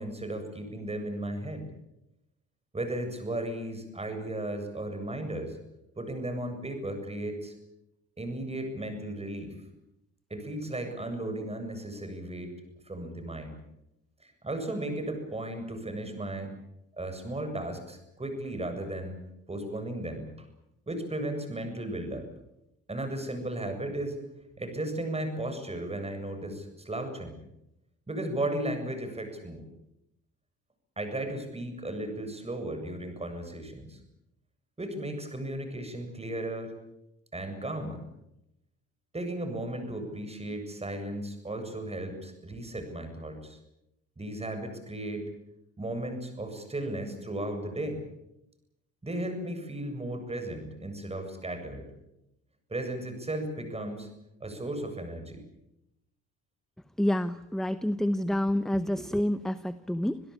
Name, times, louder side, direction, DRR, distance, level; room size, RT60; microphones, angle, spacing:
voice 1, 0.0-1.7 2.7-5.6 6.0-7.5 8.2-9.6 10.3-12.5 12.8-13.6 14.2-16.5 17.0-19.2 19.5-20.5 20.9-22.3 22.9-24.2 24.6-27.4 28.1-29.7 31.0-34.0 34.8-36.7 37.3-38.0 39.1-43.6 44.2-45.3 45.8-48.0 49.0-51.9 52.7-54.1 54.4-55.4, right 1 dB, 20° right, 7 dB, 7.6 m, -35 dB
voice 2, 57.0-60.2, left 1 dB, ahead, 13 dB, 0.9 m, -28 dB
27.5 x 17.0 x 8.7 m, 0.86 s
cardioid pair, 90°, 30 cm